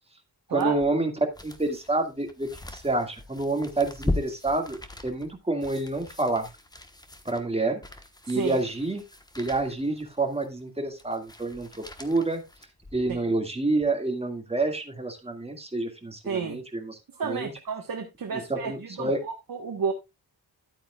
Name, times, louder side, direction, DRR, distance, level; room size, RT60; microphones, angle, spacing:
voice 1, 0.5-1.1 1.4-6.5 7.3-7.8 8.3-9.0 9.4-12.4 12.9-17.5 18.3-19.2, right 2 dB, 15° right, 2.0 m, -28 dB
sound 1, 0.6-13.3 13.7-13.8, left 2 dB, 10° left, 1.1 m, -39 dB
voice 2, 8.3-8.6 13.1-13.2 16.2-16.6 17.2-19.9, right 5 dB, 60° right, 1.3 m, -31 dB
12.0 x 8.8 x 2.3 m
wide cardioid pair, 125°, 39 cm